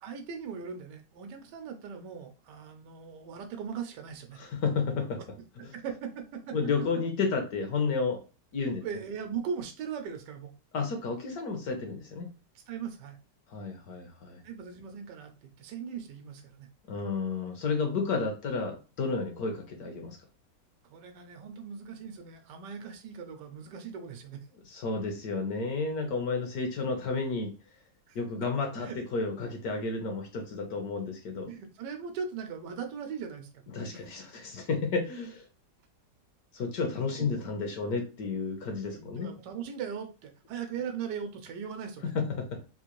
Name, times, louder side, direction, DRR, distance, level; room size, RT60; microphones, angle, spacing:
voice 1, 0.0-4.4 5.6-6.5 8.6-10.5 12.5-13.2 14.4-16.7 20.8-24.5 28.1-28.2 28.8-29.0 31.5-33.5 37.2-37.4 38.9-42.1, right 6 dB, 85° right, 5 dB, 1.2 m, -39 dB
voice 2, 4.4-5.2 6.5-8.2 8.5-8.8 10.7-12.3 13.5-14.4 16.9-20.2 24.7-27.5 28.1-31.5 33.7-35.5 36.5-39.3 42.1-42.6, left 4 dB, 65° left, 5 dB, 1.2 m, -31 dB
3.7 x 2.5 x 3.0 m, 0.31 s
omnidirectional pair, 1.9 m